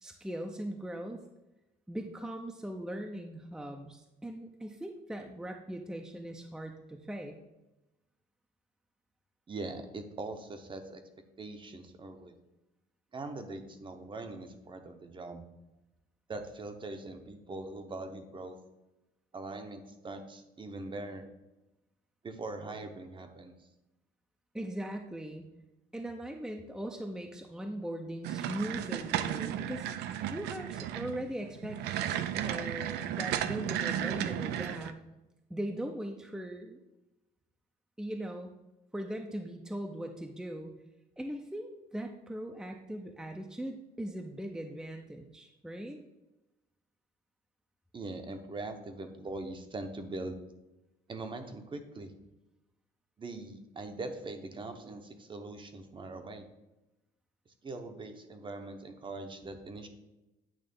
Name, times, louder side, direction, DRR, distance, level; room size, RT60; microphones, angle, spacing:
voice 1, 0.0-1.2 1.9-7.4 24.5-25.5 25.9-29.9 30.3-31.8 32.4-35.0 35.5-36.8 38.0-38.5 38.9-40.7 41.2-46.0, right 1 dB, 5° right, 3 dB, 0.5 m, -39 dB
voice 2, 9.5-11.0 11.4-12.3 13.1-15.4 16.3-18.6 19.3-21.3 22.2-23.6 47.9-50.4 51.1-52.1 53.2-56.5 57.6-59.9, right 2 dB, 30° right, 7 dB, 0.8 m, -42 dB
sound 1, 28.2-34.9, right 11 dB, 80° right, 0.5 m, -34 dB
8.8 x 3.1 x 5.3 m, 0.97 s
cardioid pair, 110°, 17 cm